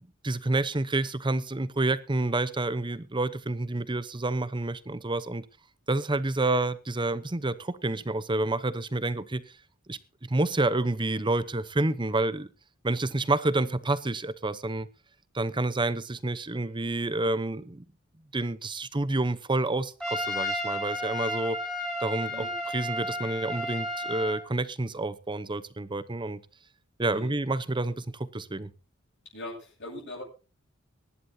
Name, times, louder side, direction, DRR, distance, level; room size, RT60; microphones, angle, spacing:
voice 1, 0.2-5.4 5.9-9.4 9.9-10.0 10.3-12.5 12.8-14.9 15.3-17.8 18.3-21.6 22.0-22.4 22.7-26.4 27.0-28.7, right 2 dB, 25° right, 14 dB, 0.8 m, -29 dB
Trumpet, 20.0-24.4, left 1 dB, 5° left, 4.6 m, -32 dB
voice 2, 27.0-27.3 29.3-30.2, left 1 dB, 60° left, -5 dB, 8.0 m, -41 dB
23.5 x 11.0 x 2.8 m, 0.33 s
head